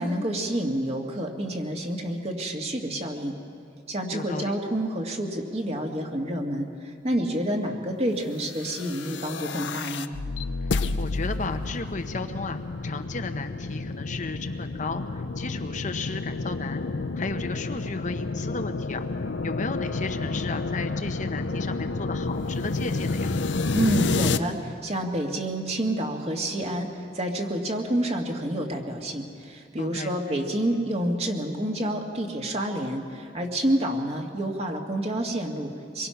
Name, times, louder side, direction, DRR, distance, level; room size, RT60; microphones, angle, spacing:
voice 1, 0.0-3.3 3.9-10.1 23.7-36.1, right 1 dB, 35° right, 2 dB, 2.1 m, -28 dB
voice 2, 4.1-4.6 11.0-16.8 17.2-23.3 29.8-30.4, left 3 dB, 45° left, 7 dB, 0.9 m, -34 dB
sound 1, 8.6-24.4, left 3 dB, 85° left, 0.7 m, -30 dB
25.0 x 22.5 x 5.9 m, 2.4 s
head